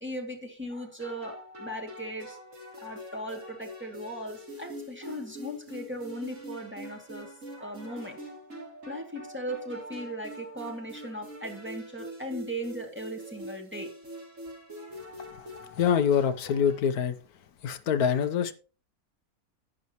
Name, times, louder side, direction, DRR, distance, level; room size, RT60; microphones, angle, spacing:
voice 1, 0.0-2.4 2.8-7.3 7.6-8.3 8.9-13.9, equal, 10° right, 2.2 m, -38 dB
sound 1, 1.0-16.9, equal, 55° right, 3.4 m, -44 dB
voice 2, 15.8-17.1 17.6-18.5, left 7 dB, 85° left, 1.3 m, -25 dB
11.0 x 10.5 x 3.0 m
omnidirectional pair, 1.6 m